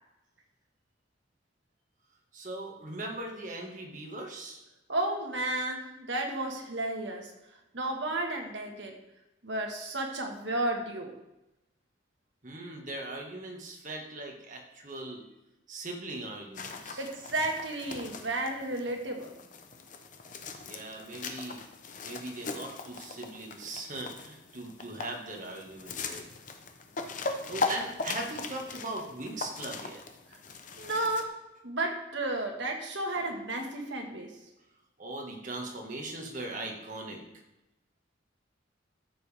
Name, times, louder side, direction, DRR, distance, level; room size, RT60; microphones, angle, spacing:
voice 1, 2.3-4.6 12.4-15.2 15.7-17.0 20.6-21.6 22.0-26.2 27.5-30.0 35.0-37.2, right 2 dB, 40° right, 0 dB, 1.8 m, -40 dB
voice 2, 4.9-7.3 7.7-8.9 9.4-11.1 17.0-19.3 30.8-31.3 31.6-34.3, right 2 dB, 70° right, 2 dB, 1.8 m, -32 dB
sound 1, 16.5-31.2, left 3 dB, 40° left, 0.9 m, -39 dB
13.5 x 7.5 x 3.6 m, 0.92 s
head